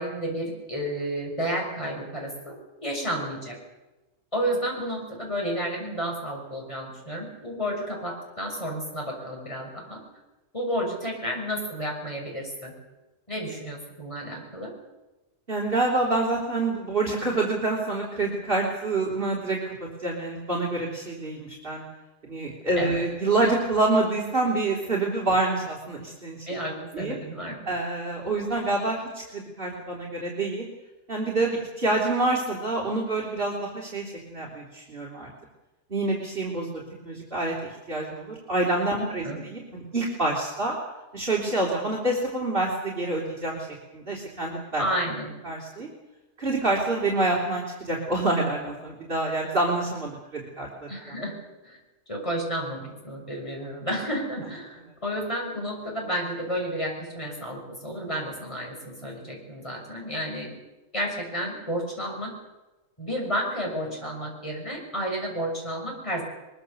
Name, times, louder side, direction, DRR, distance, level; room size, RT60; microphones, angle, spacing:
voice 1, 0.0-2.6 2.8-3.6 4.3-10.0 10.5-12.7 13.3-14.7 22.8-23.0 26.5-27.7 39.0-39.4 44.8-45.3 50.9-51.4 51.6-51.8 52.1-60.5 60.9-62.3 63.0-66.2, equal, 25° left, -1 dB, 6.5 m, -31 dB
voice 2, 15.5-19.7 20.0-21.8 22.3-26.4 26.9-27.2 27.7-30.7 31.1-35.3 35.9-40.8 41.1-43.7 43.9-44.8 45.4-45.9 46.4-50.9, right 2 dB, 50° right, -3 dB, 3.7 m, -27 dB
22.5 x 22.0 x 6.9 m, 1.1 s
omnidirectional pair, 1.3 m